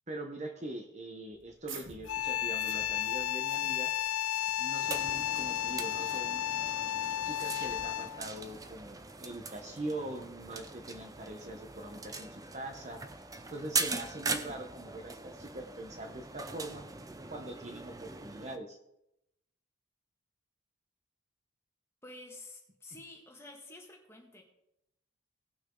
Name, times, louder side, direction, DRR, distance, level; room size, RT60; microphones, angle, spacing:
voice 1, 0.1-3.9 4.6-6.4 7.2-13.0 13.5-16.8 17.3-18.8, right 1 dB, 35° right, 4 dB, 0.9 m, -42 dB
sound 1, 1.3-6.7, right 5 dB, 70° right, 1.2 m, -52 dB
sound 2, 2.1-8.3, left 12 dB, 80° left, 0.4 m, -33 dB
sound 3, 4.8-18.6, right 4 dB, 15° right, 0.5 m, -41 dB
voice 2, 22.0-24.4, left 2 dB, 10° left, 1 dB, 1.6 m, -50 dB
18.0 x 6.2 x 3.8 m, 0.83 s
head